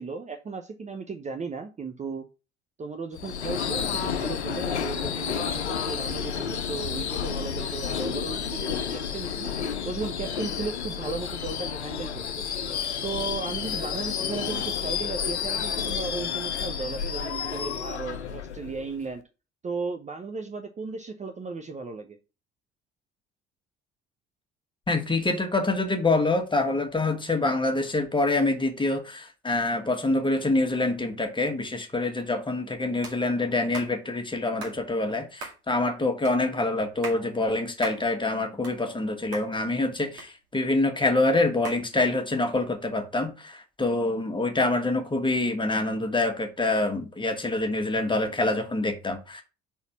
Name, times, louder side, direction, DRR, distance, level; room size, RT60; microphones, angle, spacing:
voice 1, 0.0-2.2 2.8-9.5 9.8-12.4 13.0-19.2 19.6-22.2, right 4 dB, 20° right, 0.7 m, -35 dB
Subway metro underground / Screech, 3.2-19.1, left 7 dB, 80° left, 0.6 m, -31 dB
voice 2, 24.9-49.4, left 2 dB, 15° left, 1.5 m, -26 dB
sound 1, 33.0-33.2 33.7-33.9 34.6-34.8 35.4-35.6 36.3-36.4 36.9-37.2 37.8-38.0 38.4-39.1 39.3-39.5 40.2-40.7 41.6-41.8, right 3 dB, 70° right, 2.2 m, -38 dB
5.6 x 4.1 x 5.9 m
figure-of-eight pair, 55°, 33 cm